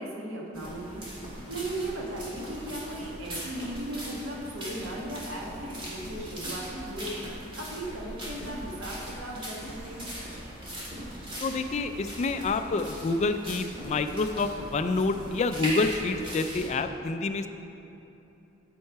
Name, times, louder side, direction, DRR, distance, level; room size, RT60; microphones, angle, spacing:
voice 1, 0.0-10.1, right 1 dB, 85° right, -2 dB, 1.4 m, -37 dB
sound 1, 0.5-16.7, equal, 25° right, 2.0 m, -39 dB
voice 2, 11.4-17.5, left 3 dB, 35° left, 8 dB, 0.3 m, -28 dB
9.6 x 5.6 x 4.7 m, 2.9 s
head